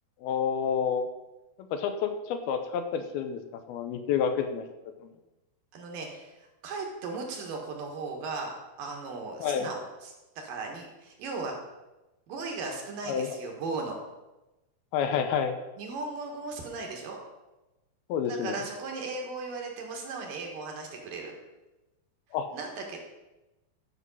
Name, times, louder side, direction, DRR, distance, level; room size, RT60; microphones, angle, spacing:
voice 1, 0.2-1.1 1.6-3.4 3.7-4.6 5.0-5.1 9.4-9.7 13.1-13.4 14.9-15.5 18.1-18.6 22.3-22.5, left 7 dB, 85° left, 8 dB, 2.7 m, -29 dB
voice 2, 5.7-11.6 12.3-14.0 15.8-17.2 18.2-21.3 22.5-23.0, right 3 dB, 65° right, 1 dB, 3.1 m, -37 dB
12.5 x 6.1 x 5.5 m, 1.0 s
omnidirectional pair, 4.4 m